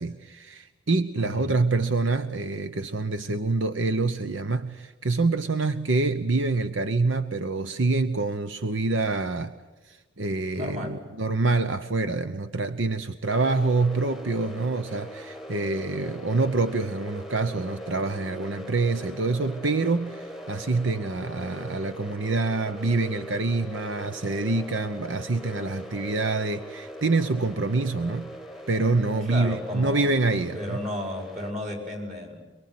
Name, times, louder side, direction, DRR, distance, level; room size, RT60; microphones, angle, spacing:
voice 1, 0.0-9.6 9.8-28.3 28.7-30.8, right 3 dB, 80° right, 10 dB, 1.0 m, -26 dB
voice 2, 1.2-1.6 10.5-11.0 29.2-30.1 30.5-32.4, left 1 dB, 35° right, 3 dB, 5.1 m, -33 dB
sound 1, 13.3-31.5, equal, ahead, 1.3 m, -41 dB
23.5 x 23.5 x 9.5 m, 1.2 s
head